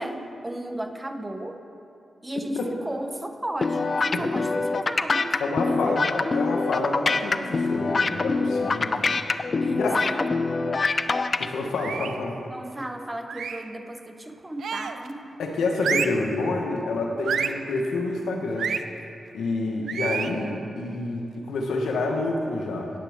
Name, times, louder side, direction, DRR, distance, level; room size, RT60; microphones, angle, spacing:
voice 1, 0.0-1.7 2.2-6.0 8.8-9.2 9.6-10.3 12.5-15.4, right 1 dB, 20° right, 7 dB, 0.9 m, -35 dB
sound 1, 3.6-11.5, left 3 dB, 50° left, 0.4 m, -24 dB
voice 2, 5.4-9.2 9.7-10.0 11.4-12.3 15.4-18.7 19.3-22.9, left 2 dB, 90° left, 1 dB, 1.2 m, -28 dB
sound 2, 11.8-12.3 13.3-13.7 14.6-15.1 15.8-16.3 17.3-17.7 18.6-18.9 19.9-20.4, right 6 dB, 80° right, 0.4 m, -29 dB
18.5 x 7.4 x 3.6 m, 2.6 s
cardioid pair, 55°, 0 cm